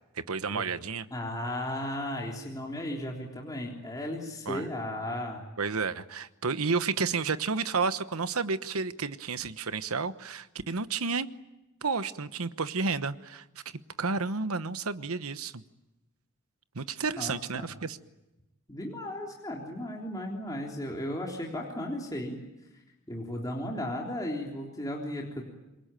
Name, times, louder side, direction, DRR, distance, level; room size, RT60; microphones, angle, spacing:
voice 1, 0.1-1.1 4.5-4.7 5.6-11.3 11.8-13.4 14.0-15.6 16.7-18.0, right 4 dB, 80° right, 13 dB, 1.1 m, -31 dB
voice 2, 1.1-5.4 17.2-17.7 18.7-22.4 23.1-25.5, left 1 dB, 15° left, -1 dB, 3.6 m, -35 dB
27.0 x 23.0 x 9.1 m, 0.99 s
head